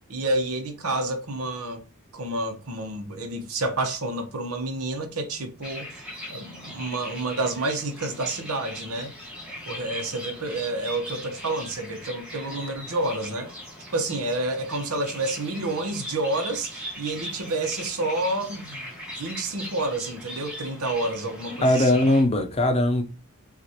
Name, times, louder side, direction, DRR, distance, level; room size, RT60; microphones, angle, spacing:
voice 1, 0.1-1.9 2.1-6.0 6.3-9.1 9.7-13.5 13.9-18.9 19.1-21.9, right 2 dB, 75° right, 1.0 m, -29 dB
sound 1, 5.6-22.2, left 1 dB, 5° right, 1.5 m, -40 dB
voice 2, 21.6-23.0, left 1 dB, 25° left, 0.6 m, -20 dB
5.9 x 2.5 x 2.9 m
head